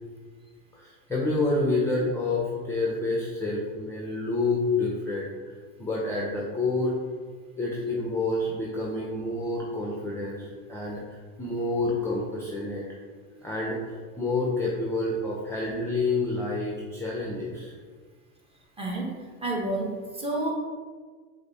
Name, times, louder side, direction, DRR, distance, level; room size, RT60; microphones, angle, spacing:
voice 1, 0.7-5.3 5.8-7.0 7.6-11.0 11.4-12.8 13.4-17.7, left 2 dB, 5° left, -4 dB, 0.6 m, -28 dB
voice 2, 18.8-19.1 19.4-20.5, right 2 dB, 15° right, -2 dB, 1.0 m, -29 dB
4.9 x 2.1 x 4.1 m, 1.5 s
supercardioid pair, 95°, 39 cm